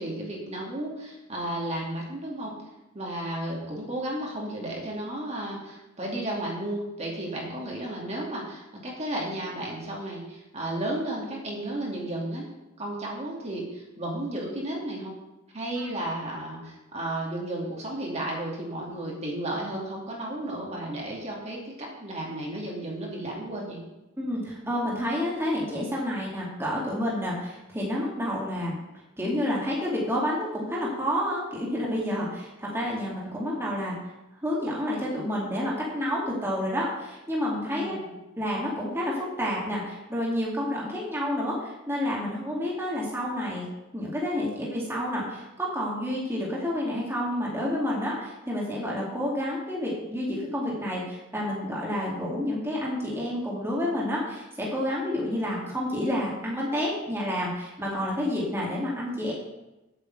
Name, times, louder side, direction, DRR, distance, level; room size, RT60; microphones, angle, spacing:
voice 1, 0.0-2.5 2.9-12.5 12.8-15.2 15.5-23.8 37.8-38.1, right 1 dB, 35° right, -2 dB, 2.6 m, -33 dB
voice 2, 24.2-28.8 29.2-34.0 34.4-38.0 38.4-43.7 43.9-59.3, left 1 dB, 10° right, -5 dB, 2.4 m, -29 dB
8.1 x 7.1 x 8.0 m, 1.0 s
head